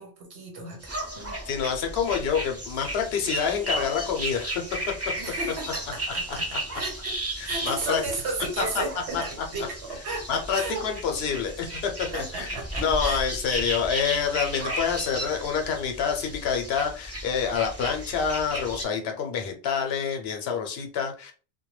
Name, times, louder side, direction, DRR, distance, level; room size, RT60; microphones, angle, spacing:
voice 1, 0.0-1.4 5.2-10.9 12.1-13.2, right 3 dB, 85° right, 1 dB, 1.2 m, -34 dB
sound 1, 0.8-18.9, right 1 dB, 15° right, 0.6 m, -34 dB
voice 2, 1.5-4.6 7.4-8.0 9.1-9.2 10.3-21.3, left 6 dB, 70° left, 3 dB, 0.8 m, -27 dB
2.2 x 2.2 x 3.0 m, 0.37 s
omnidirectional pair, 1.1 m